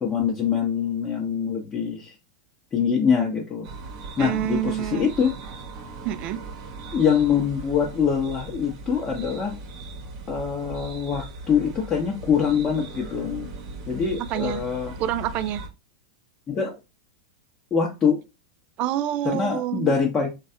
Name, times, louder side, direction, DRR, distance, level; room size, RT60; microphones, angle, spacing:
voice 1, 0.0-2.1 2.7-3.7 4.2-5.3 6.9-9.5 10.3-13.5 13.9-14.9 16.5-16.7 17.7-18.2 19.2-20.3, left 7 dB, 25° left, 0.8 m, -24 dB
sound 1, 3.6-15.7, right 3 dB, 60° right, 0.9 m, -39 dB
voice 2, 4.2-5.1 6.0-6.4 14.3-14.6 15.0-15.6 18.8-19.9, right 12 dB, 45° right, 0.3 m, -27 dB
3.1 x 2.3 x 2.7 m
hypercardioid pair, 105°, 3 cm